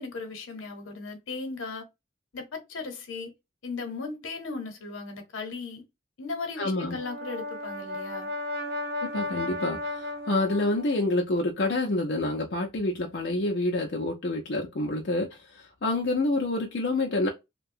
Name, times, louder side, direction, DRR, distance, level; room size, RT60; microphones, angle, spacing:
voice 1, 0.0-1.8 2.3-3.3 3.6-5.8 6.2-8.3, left 3 dB, 85° left, 0.8 m, -37 dB
voice 2, 6.6-7.0 9.0-17.3, left 2 dB, 55° left, 0.5 m, -28 dB
Brass instrument, 6.8-11.1, left 1 dB, 50° right, 0.5 m, -34 dB
2.7 x 2.2 x 2.5 m
head